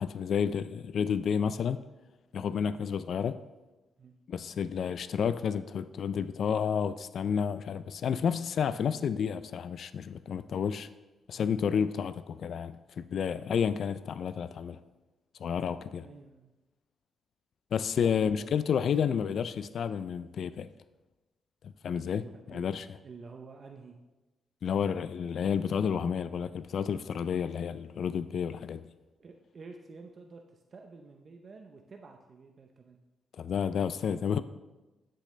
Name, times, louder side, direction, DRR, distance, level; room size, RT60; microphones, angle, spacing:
voice 1, 0.0-1.8 2.3-3.4 4.3-10.9 11.3-14.8 15.4-16.1 17.7-20.7 21.8-22.9 24.6-28.9 33.3-34.4, left 7 dB, 60° left, 0.3 m, -30 dB
voice 2, 16.0-16.5 18.0-18.6 19.1-19.2 22.2-22.7 23.0-24.0 29.2-33.0 33.8-34.4, right 4 dB, 40° right, 0.6 m, -50 dB
11.5 x 6.5 x 3.2 m
cardioid pair, 125°, 0 cm